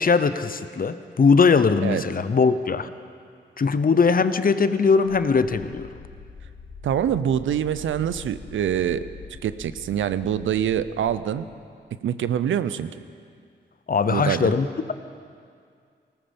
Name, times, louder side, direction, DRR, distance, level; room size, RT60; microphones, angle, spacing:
voice 1, 0.0-2.9 3.6-5.9 13.9-14.9, left 5 dB, 50° left, 12 dB, 0.8 m, -20 dB
sound 1, 5.1-11.2, left 5 dB, 85° left, 1.2 m, -44 dB
voice 2, 6.8-9.0 9.4-11.5 12.0-12.9 14.1-14.5, right 9 dB, 90° right, 14 dB, 0.5 m, -25 dB
18.0 x 14.0 x 5.4 m, 2.2 s
cardioid pair, 55°, 19 cm